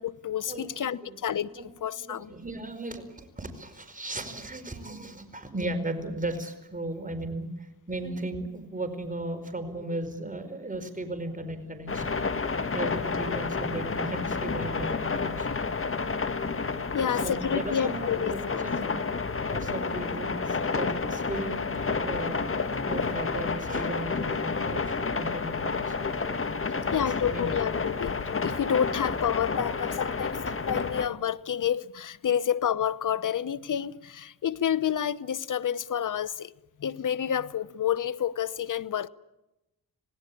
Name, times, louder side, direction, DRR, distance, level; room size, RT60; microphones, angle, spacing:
voice 1, 0.0-1.5 1.8-2.3 16.9-18.9 22.1-22.2 26.2-26.3 26.8-36.5 36.8-39.1, left 9 dB, 55° left, 1.0 m, -29 dB
voice 2, 2.0-12.2 12.7-15.6 17.0-19.0 19.5-22.5 22.9-26.0 26.8-27.5, right 1 dB, 20° right, 4.8 m, -36 dB
sound 1, 11.9-31.1, left 4 dB, 35° left, 1.7 m, -30 dB
27.5 x 18.0 x 8.6 m
cardioid pair, 70°, 37 cm